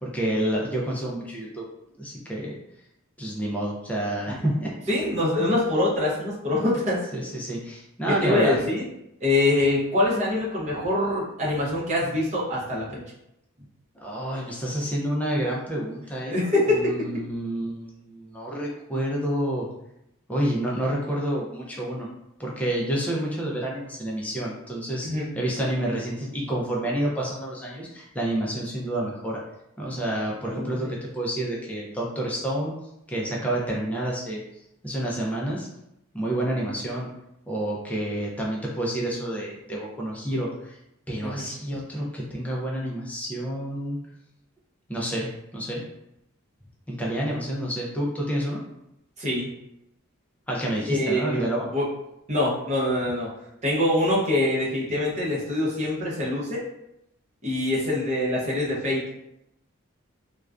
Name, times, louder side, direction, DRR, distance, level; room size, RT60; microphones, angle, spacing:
voice 1, 0.0-1.6 2.0-2.5 3.2-4.7 5.4-5.5 7.1-8.6 14.0-16.4 16.7-19.7 20.3-22.1 22.4-25.1 25.3-29.4 29.8-32.8 33.1-34.4 34.8-35.7 36.1-37.1 37.5-40.8 41.1-44.0 44.9-45.8 46.9-48.6 50.5-51.7, right 1 dB, 5° left, -4 dB, 0.4 m, -29 dB
voice 2, 4.9-7.0 8.1-8.8 9.2-13.0 16.3-16.9 25.0-25.3 30.5-30.9 41.2-41.4 49.2-49.5 50.9-51.9 52.3-53.3 53.6-56.6 57.4-59.0, left 1 dB, 30° right, -6 dB, 0.7 m, -24 dB
2.4 x 2.2 x 2.3 m, 0.83 s
head